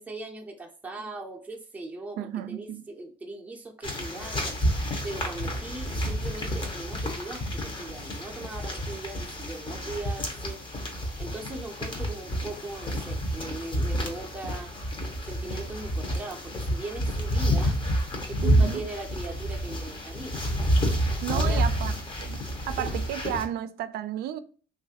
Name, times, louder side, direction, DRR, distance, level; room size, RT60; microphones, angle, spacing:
voice 1, 0.0-4.6 5.0-10.6 11.2-14.7 15.3-17.8 18.2-20.4 21.3-21.6 22.7-23.0, right 2 dB, 10° right, 0.6 m, -39 dB
voice 2, 2.2-2.8 18.4-18.9 21.2-21.9 22.2-24.4, right 10 dB, 70° right, 0.4 m, -33 dB
sound 1, 3.8-23.4, equal, 30° left, 0.8 m, -29 dB
3.0 x 2.5 x 2.8 m
cardioid pair, 110°, 17 cm